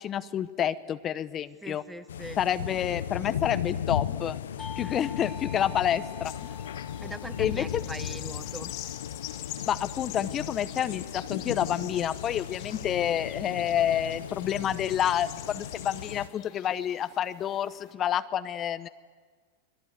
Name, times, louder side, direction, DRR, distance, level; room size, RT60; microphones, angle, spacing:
voice 1, 0.0-1.8 2.4-4.4 4.8-6.3 7.4-7.8 9.7-18.9, left 10 dB, 30° left, 12 dB, 0.9 m, -29 dB
voice 2, 1.6-2.4 4.8-5.1 7.0-8.7, right 2 dB, 5° right, 13 dB, 1.1 m, -41 dB
sound 1, 2.1-16.3, left 9 dB, 85° left, 0.7 m, -36 dB
Bell / Doorbell, 4.6-9.7, left 6 dB, 15° left, 2.0 m, -47 dB
sound 2, 6.2-17.9, left 14 dB, 55° left, 2.4 m, -45 dB
29.5 x 20.5 x 8.2 m, 1.5 s
hypercardioid pair, 115°, 0 cm